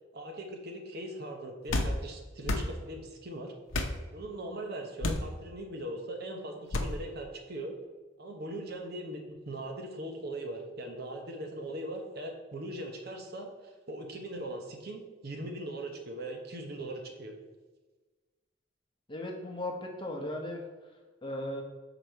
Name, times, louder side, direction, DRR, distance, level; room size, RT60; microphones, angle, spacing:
voice 1, 0.1-3.5 4.1-7.8 8.2-17.4, right 1 dB, 55° right, 3 dB, 0.9 m, -40 dB
sound 1, 1.7-1.9 2.4-2.7 3.7-4.0 5.0-5.3 6.7-6.9, left 2 dB, 85° left, 0.7 m, -29 dB
voice 2, 19.1-20.6 21.2-21.6, left 1 dB, 25° left, 1 dB, 0.9 m, -36 dB
6.7 x 4.0 x 4.5 m, 1.3 s
head